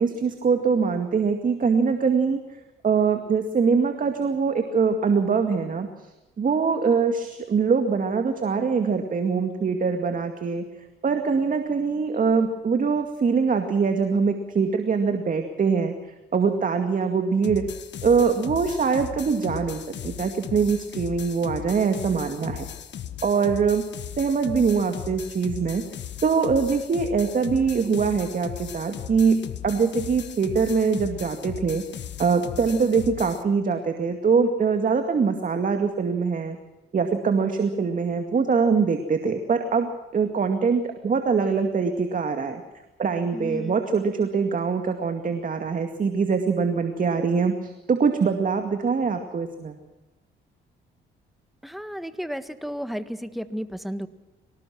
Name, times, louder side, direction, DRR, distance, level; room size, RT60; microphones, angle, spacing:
voice 1, 0.0-2.4 2.8-5.9 6.4-10.6 11.0-15.9 16.3-17.6 18.0-22.7 23.2-23.8 24.2-25.8 26.2-31.8 32.2-36.6 36.9-42.6 43.0-49.7, right 5 dB, 45° right, 6 dB, 2.2 m, -23 dB
sound 1, 17.4-33.4, left 10 dB, 65° left, 1.7 m, -37 dB
voice 2, 43.3-43.8 51.6-54.1, equal, ahead, 10 dB, 1.6 m, -33 dB
24.5 x 18.5 x 6.1 m, 1.1 s
cardioid pair, 90°, 20 cm